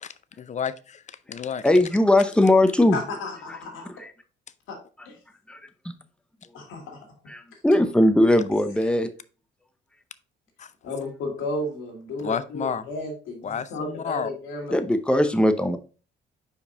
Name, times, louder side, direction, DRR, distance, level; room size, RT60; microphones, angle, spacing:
voice 1, 0.4-1.7 10.6-10.7 12.2-12.9 13.4-14.3, left 7 dB, 35° left, 0.5 m, -31 dB
voice 2, 1.6-3.0 4.0-4.1 5.5-5.6 7.3-9.1 14.7-15.8, left 1 dB, 5° left, 0.8 m, -19 dB
voice 3, 2.9-3.9 4.7-4.8 5.1-5.2 6.5-7.0 10.8-14.8, left 2 dB, 90° left, 2.1 m, -33 dB
5.3 x 4.9 x 3.8 m
cardioid pair, 90°, 20 cm